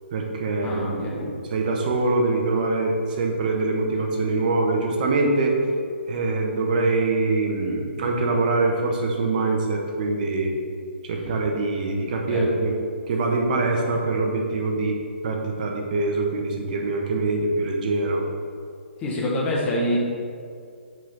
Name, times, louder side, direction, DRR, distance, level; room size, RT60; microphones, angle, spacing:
voice 1, 0.1-5.6 6.1-10.5 11.0-12.7 13.1-15.0 15.2-18.2, right 3 dB, 40° right, 1 dB, 1.1 m, -24 dB
voice 2, 0.6-1.3 12.3-12.5 19.0-20.0, left 1 dB, 20° left, -5 dB, 1.6 m, -26 dB
5.9 x 4.5 x 5.7 m, 2.2 s
figure-of-eight pair, 135°, 7 cm